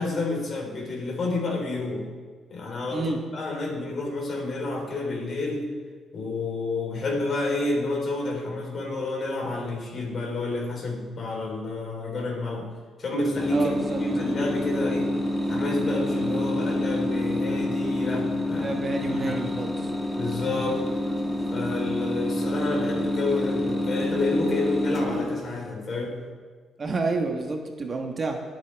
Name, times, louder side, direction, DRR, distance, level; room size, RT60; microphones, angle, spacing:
voice 1, 0.0-2.1 2.5-5.7 6.1-12.7 13.0-13.7 14.0-15.2 15.5-18.7 19.1-19.6 20.2-21.0 21.5-26.2, left 2 dB, 45° left, -1 dB, 3.9 m, -29 dB
sound 1, 13.3-25.7, left 1 dB, 10° left, 1.5 m, -28 dB
voice 2, 13.5-14.0 18.5-19.7 26.8-28.4, right 3 dB, 35° right, 3 dB, 1.3 m, -29 dB
23.0 x 8.4 x 3.5 m, 1.5 s
cardioid pair, 105°, 0 cm